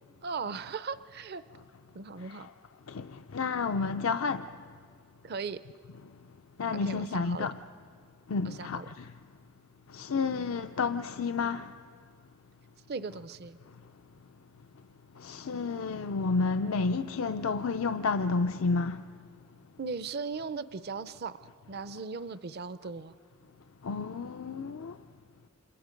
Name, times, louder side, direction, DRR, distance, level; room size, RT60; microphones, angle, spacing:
voice 1, 0.2-1.4 1.9-2.5 5.2-5.6 6.7-7.5 8.4-8.9 12.9-13.6 19.8-23.1, right 4 dB, 50° right, 0.5 m, -38 dB
voice 2, 2.2-2.5 2.9-4.5 6.6-7.6 8.3-9.1 9.9-11.7 15.2-19.0 23.8-25.0, left 4 dB, 75° left, 0.5 m, -31 dB
29.5 x 27.0 x 5.2 m
head